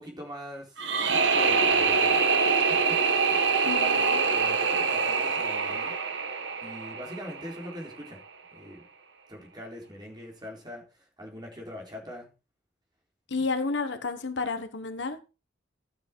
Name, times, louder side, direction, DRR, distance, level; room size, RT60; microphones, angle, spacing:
voice 1, 0.0-2.2 2.7-5.9 6.6-8.2 8.5-8.8 9.3-12.3 13.4-13.5, equal, 20° right, 4.0 m, -42 dB
sound 1, 0.8-7.8, right 5 dB, 65° right, 1.3 m, -25 dB
voice 2, 3.6-4.2 13.3-15.2, left 4 dB, 65° left, 1.2 m, -31 dB
12.0 x 7.4 x 4.5 m
head